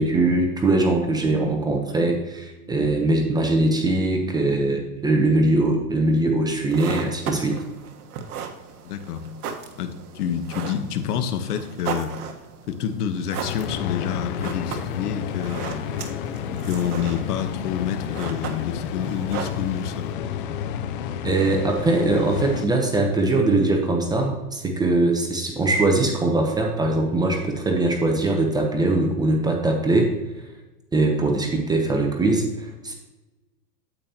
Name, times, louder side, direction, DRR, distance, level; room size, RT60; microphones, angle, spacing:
voice 1, 0.0-7.5 21.2-30.1 30.9-32.9, right 2 dB, 10° right, 2 dB, 0.7 m, -21 dB
sound 1, 6.5-20.1, right 6 dB, 60° right, 1.4 m, -36 dB
voice 2, 8.8-9.3 9.8-12.2 12.7-15.6 16.6-20.6, left 8 dB, 65° left, 9 dB, 1.2 m, -28 dB
sound 2, 13.4-22.7, left 8 dB, 35° left, 0.4 m, -30 dB
9.1 x 8.4 x 2.8 m, 1.1 s
hypercardioid pair, 130°, 49 cm